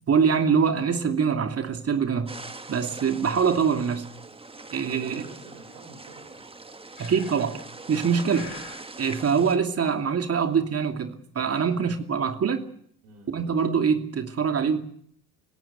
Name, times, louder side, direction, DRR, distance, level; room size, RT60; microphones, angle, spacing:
voice 1, 0.1-2.3 2.7-4.1 4.7-5.2 7.0-8.5 9.0-12.6 13.3-14.8, right 6 dB, 30° right, 2.6 m, -24 dB
sound 1, 2.3-9.6, right 3 dB, 10° right, 1.8 m, -42 dB
voice 2, 4.5-6.5 13.0-13.3, right 3 dB, 65° right, 4.4 m, -48 dB
Breathing, 7.0-7.6 8.3-8.9, left 4 dB, 85° left, 3.6 m, -44 dB
29.0 x 17.0 x 6.8 m
figure-of-eight pair, 55°, 45 cm